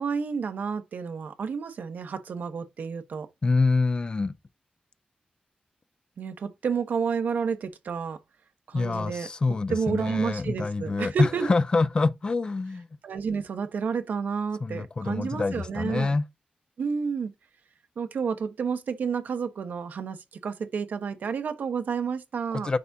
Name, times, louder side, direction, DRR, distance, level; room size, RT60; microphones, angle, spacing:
voice 1, 0.0-3.3 6.2-8.2 8.7-9.3 9.7-11.5 13.0-16.2 16.8-17.3 18.0-20.2 20.4-22.7, right 6 dB, 75° right, 1.0 m, -30 dB
voice 2, 3.4-4.3 8.7-12.9 14.6-16.2 22.6-22.8, left 3 dB, 30° left, 0.5 m, -26 dB
9.8 x 3.5 x 2.7 m
wide cardioid pair, 160°, 3 cm